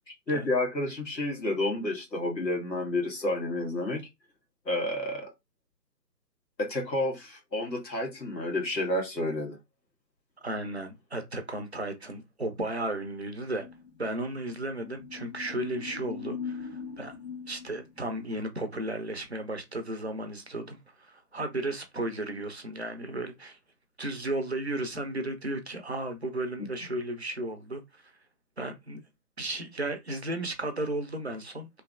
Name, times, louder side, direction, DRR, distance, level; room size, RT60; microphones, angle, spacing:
voice 1, 0.3-4.0 4.6-5.3 6.6-9.6, left 1 dB, 85° left, 1.6 m, -30 dB
voice 2, 10.4-13.7 14.0-17.1 17.5-23.6 24.0-28.1 28.6-29.0 29.4-31.7, right 1 dB, 45° right, 0.5 m, -34 dB
sound 1, 13.4-18.5, left 6 dB, 60° left, 1.4 m, -42 dB
3.1 x 2.6 x 2.4 m
figure-of-eight pair, 150°, 50 cm